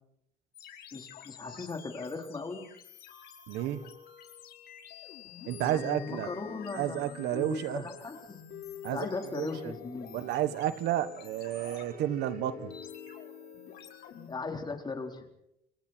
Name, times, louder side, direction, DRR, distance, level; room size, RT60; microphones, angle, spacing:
sound 1, 0.5-14.3, left 7 dB, 70° left, 4.8 m, -47 dB
voice 1, 0.9-2.6 5.6-8.4 8.9-10.2 14.3-15.2, left 4 dB, 25° left, 3 dB, 4.3 m, -38 dB
voice 2, 3.5-3.9 5.5-6.3 6.7-7.8 8.8-9.7 10.1-12.7, right 12 dB, 85° right, 13 dB, 1.4 m, -32 dB
sound 2, 8.7-9.0 9.6-10.7 11.4-12.9, right 7 dB, 60° right, 3.7 m, -55 dB
28.5 x 24.0 x 4.5 m, 0.79 s
cardioid pair, 110°, 17 cm